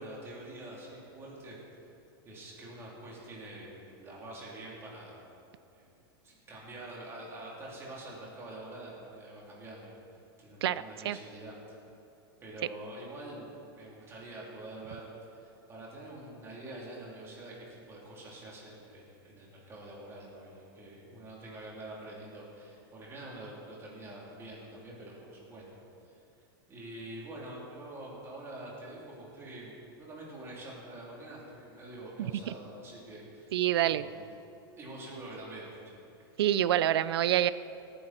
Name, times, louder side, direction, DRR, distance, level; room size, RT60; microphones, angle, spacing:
voice 1, 0.0-1.6 2.2-5.2 5.7-5.9 6.2-9.9 10.4-11.5 12.4-26.1 26.7-29.7 30.0-33.6 33.9-34.3 34.8-36.0, right 1 dB, 20° right, -4 dB, 3.4 m, -46 dB
voice 2, 10.6-11.2 32.2-32.5 33.5-34.1 36.4-37.5, right 12 dB, 85° right, 16 dB, 0.5 m, -27 dB
19.0 x 10.0 x 4.4 m, 2.8 s
supercardioid pair, 155°, 13 cm